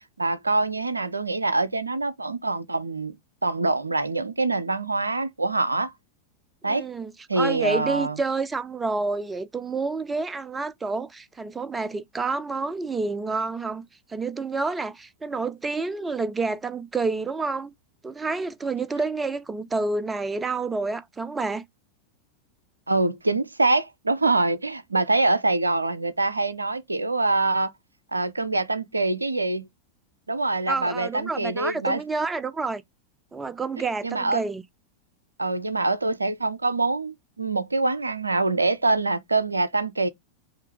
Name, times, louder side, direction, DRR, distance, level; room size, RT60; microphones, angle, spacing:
voice 1, 0.2-3.2 3.4-5.9 6.6-6.9 7.3-8.2 22.9-27.7 28.1-29.7 30.3-32.0 34.0-34.4 35.4-40.1, right 3 dB, 80° right, 0.5 m, -25 dB
voice 2, 6.6-17.7 18.0-21.6 30.7-32.8 33.3-34.6, right 3 dB, 15° right, 0.4 m, -29 dB
5.5 x 2.5 x 3.4 m
figure-of-eight pair, 90°, 0 cm